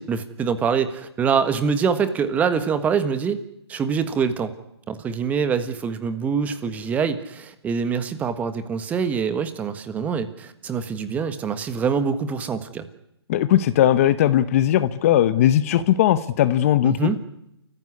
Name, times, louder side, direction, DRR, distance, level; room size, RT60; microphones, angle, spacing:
voice 1, 0.0-3.4 3.7-4.5 4.9-12.9 16.8-17.2, right 6 dB, 10° right, 11 dB, 1.5 m, -24 dB
voice 2, 13.3-17.2, left 12 dB, 30° left, 15 dB, 0.9 m, -18 dB
30.0 x 15.0 x 9.8 m, 0.83 s
hypercardioid pair, 155°, 14 cm